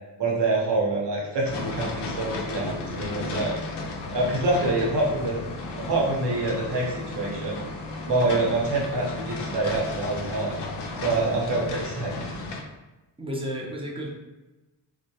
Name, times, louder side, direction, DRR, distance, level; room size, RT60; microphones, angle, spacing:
voice 1, 0.2-3.5 4.1-5.3 5.8-7.6 8.1-10.6 11.0-12.3, right 2 dB, 70° right, -3 dB, 0.9 m, -26 dB
sound 1, 1.4-12.6, left 2 dB, 70° left, 0.5 m, -34 dB
voice 2, 13.2-14.1, equal, 15° right, -2 dB, 0.7 m, -32 dB
2.2 x 2.1 x 2.7 m, 1.1 s
supercardioid pair, 45°, 43 cm